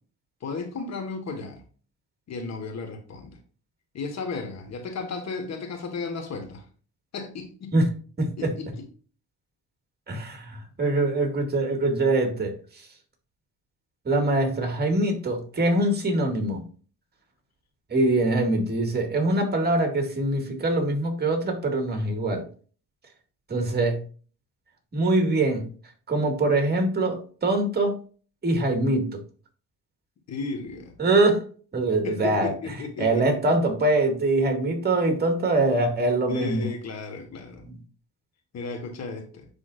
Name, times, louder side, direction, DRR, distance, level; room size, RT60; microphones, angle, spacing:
voice 1, 0.4-1.6 2.3-3.4 3.9-6.6 7.1-7.8 8.4-8.7 30.3-30.9 32.0-33.2 36.3-37.6 38.5-39.5, left 4 dB, 60° left, 5 dB, 1.6 m, -34 dB
voice 2, 8.2-8.5 10.1-12.5 14.1-16.6 17.9-22.4 23.5-24.0 24.9-25.7 26.1-27.9 28.4-29.1 31.0-31.4 31.7-32.5 33.0-36.7, right 2 dB, 35° right, 4 dB, 2.1 m, -23 dB
10.0 x 3.7 x 2.5 m, 0.39 s
cardioid pair, 90°, 30 cm